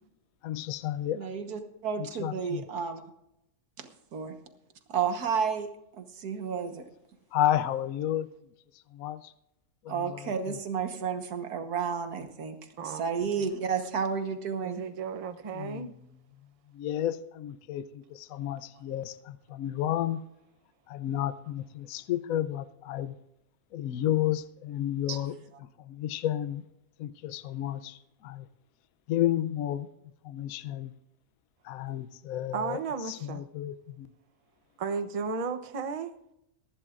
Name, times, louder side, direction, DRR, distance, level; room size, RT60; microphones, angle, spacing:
voice 1, 0.4-1.4 2.0-2.6 7.3-8.3 8.9-9.3 9.8-10.5 15.5-15.9 16.7-20.2 20.9-23.1 23.7-25.4 25.8-26.6 27.0-28.5 29.1-29.9 30.2-30.9 31.6-32.8 33.1-34.1, left 12 dB, 70° left, 1.0 m, -32 dB
voice 2, 1.2-3.0 3.8-4.4 4.9-5.7 6.0-6.9 9.9-12.6 12.9-14.8 25.1-25.2, right 6 dB, 80° right, 1.7 m, -31 dB
voice 3, 14.6-15.9 18.7-18.8 32.5-33.4 34.8-36.1, right 5 dB, 35° right, 0.6 m, -34 dB
22.5 x 11.5 x 2.5 m
omnidirectional pair, 1.6 m